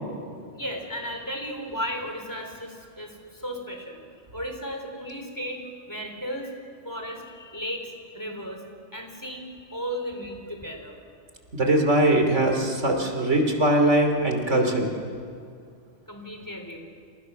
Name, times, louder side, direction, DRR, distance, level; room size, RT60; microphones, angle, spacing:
voice 1, 0.5-4.0 4.3-5.6 5.9-6.5 6.8-8.6 8.9-11.0 16.1-16.8, equal, 15° left, 3 dB, 3.7 m, -35 dB
voice 2, 11.5-14.9, right 1 dB, 85° right, 4 dB, 3.3 m, -21 dB
28.5 x 28.5 x 6.4 m, 2.2 s
omnidirectional pair, 1.2 m